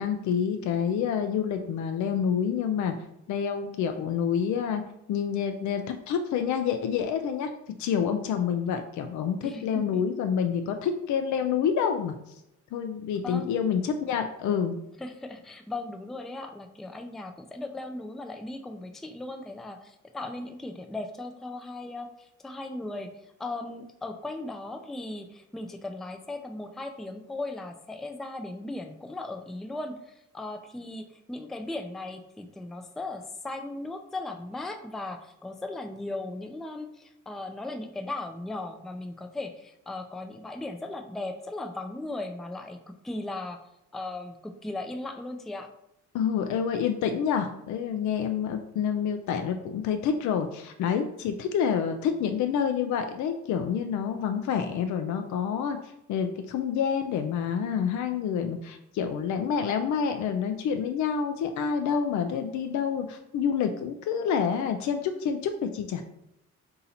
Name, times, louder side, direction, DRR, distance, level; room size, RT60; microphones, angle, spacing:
voice 1, 0.0-2.9 3.3-4.8 5.1-7.5 7.8-12.1 12.7-14.8 46.1-55.8 56.1-66.1, left 7 dB, 70° left, 7 dB, 0.5 m, -28 dB
voice 2, 9.4-10.0 13.2-13.5 15.0-42.8 43.0-45.7, left 2 dB, ahead, 5 dB, 0.4 m, -37 dB
3.9 x 2.8 x 4.1 m, 0.84 s
cardioid pair, 90°, 30 cm